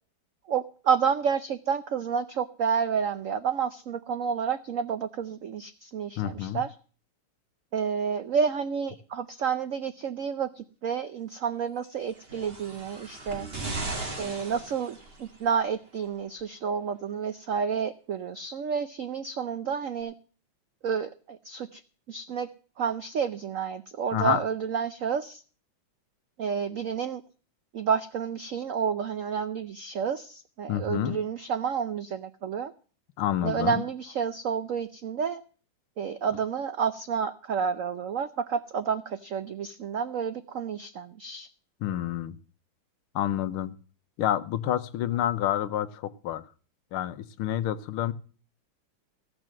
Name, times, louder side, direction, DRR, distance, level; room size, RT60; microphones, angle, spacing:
voice 1, 0.5-6.7 7.7-13.5 14.2-20.1 20.8-21.8 22.1-22.5 22.8-25.4 26.4-27.2 27.7-32.7 33.4-35.4 36.0-41.5, right 7 dB, 85° right, 11 dB, 0.7 m, -30 dB
voice 2, 6.2-6.6 24.1-24.4 30.7-31.2 33.2-33.8 41.8-42.4 43.1-43.7 44.2-46.4 46.9-48.1, left 11 dB, 85° left, 12 dB, 1.7 m, -28 dB
sound 1, 12.1-15.5 16.4-16.5, right 3 dB, 30° right, 2.0 m, -37 dB
15.5 x 6.1 x 7.5 m, 0.39 s
omnidirectional pair, 2.3 m